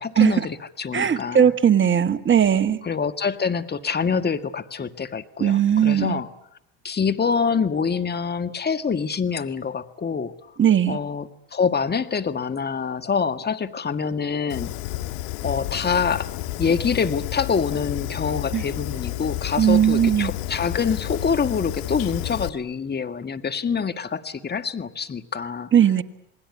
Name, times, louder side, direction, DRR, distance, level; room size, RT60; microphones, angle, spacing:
voice 1, 0.0-1.5 2.8-6.3 6.8-10.3 10.9-14.7 15.4-16.3 16.6-25.7, left 6 dB, 25° left, 10 dB, 1.8 m, -25 dB
voice 2, 0.9-2.8 5.4-6.2 10.6-11.0 18.5-18.6 19.6-20.3 25.7-26.0, right 9 dB, 30° right, 10 dB, 1.7 m, -18 dB
Fire, 14.5-22.5, left 16 dB, 80° left, 1.6 m, -31 dB
28.0 x 20.0 x 9.8 m, 0.80 s
supercardioid pair, 90°, 39 cm